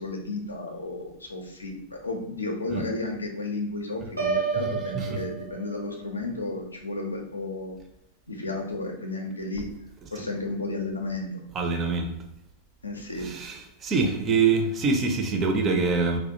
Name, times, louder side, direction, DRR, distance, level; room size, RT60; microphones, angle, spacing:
voice 1, 0.0-7.8 8.3-9.7 10.1-11.3 12.8-13.3, left 2 dB, 75° left, 2 dB, 0.4 m, -33 dB
Piano, 4.2-6.1, right 5 dB, 85° right, 0.6 m, -30 dB
voice 2, 11.5-12.1 13.2-16.2, right 4 dB, 25° right, 4 dB, 0.4 m, -24 dB
2.3 x 2.0 x 2.7 m, 0.81 s
figure-of-eight pair, 90°, 0 cm